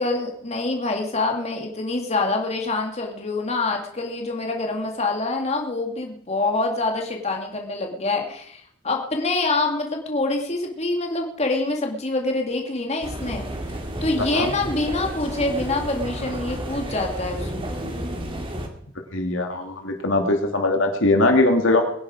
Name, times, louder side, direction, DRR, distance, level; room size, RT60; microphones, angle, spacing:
voice 1, 0.0-13.5 14.0-17.5, left 2 dB, 35° left, 2 dB, 2.3 m, -25 dB
sound 1, 13.0-18.7, right 1 dB, 25° right, 2.4 m, -31 dB
voice 2, 19.1-21.8, left 2 dB, 75° left, 3 dB, 2.7 m, -20 dB
22.0 x 10.5 x 5.0 m, 0.67 s
head